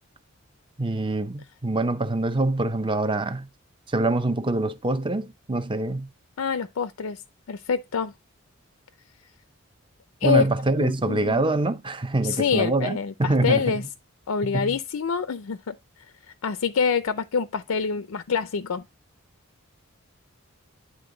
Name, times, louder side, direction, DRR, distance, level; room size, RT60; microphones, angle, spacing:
voice 1, 0.8-3.5 3.9-6.1 10.2-13.7 14.4-14.8, right 2 dB, 25° right, 0.6 m, -25 dB
voice 2, 6.4-7.2 7.5-8.1 10.2-10.4 10.8-11.4 12.2-13.8 14.3-15.7 16.4-18.8, left 6 dB, 85° left, 0.5 m, -26 dB
9.7 x 3.7 x 3.8 m
head